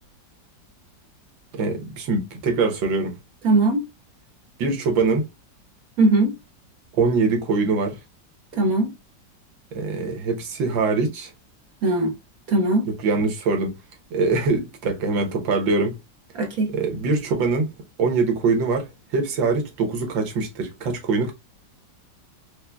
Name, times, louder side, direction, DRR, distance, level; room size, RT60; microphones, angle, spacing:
voice 1, 1.5-3.2 4.6-5.3 7.0-8.0 9.7-11.3 12.8-13.7 14.1-16.0 16.7-17.7 18.0-21.3, right 4 dB, 90° right, 1.7 m, -23 dB
voice 2, 3.4-3.8 6.0-6.3 8.6-8.9 11.8-12.1 12.5-12.9 16.3-16.7, right 2 dB, 55° right, 1.5 m, -19 dB
4.7 x 2.5 x 2.2 m
omnidirectional pair, 2.0 m